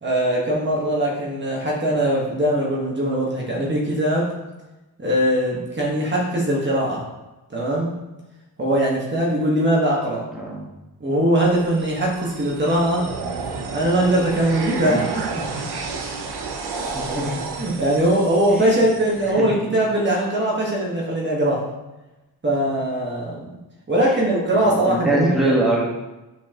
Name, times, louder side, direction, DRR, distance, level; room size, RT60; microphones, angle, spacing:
voice 1, 0.0-4.3 5.0-7.0 7.5-7.9 8.6-10.2 11.0-13.1 13.7-15.5 16.7-16.9 17.6-21.6 22.4-23.6 23.9-25.5, right 1 dB, 30° right, -4 dB, 1.5 m, -21 dB
voice 2, 10.3-10.6 16.9-17.5 18.5-18.8 19.3-19.6 24.5-25.8, right 1 dB, ahead, -5 dB, 1.5 m, -23 dB
sound 1, 11.4-19.3, right 4 dB, 85° right, 0.9 m, -32 dB
7.2 x 5.7 x 3.0 m, 1.1 s
wide cardioid pair, 135°, 38 cm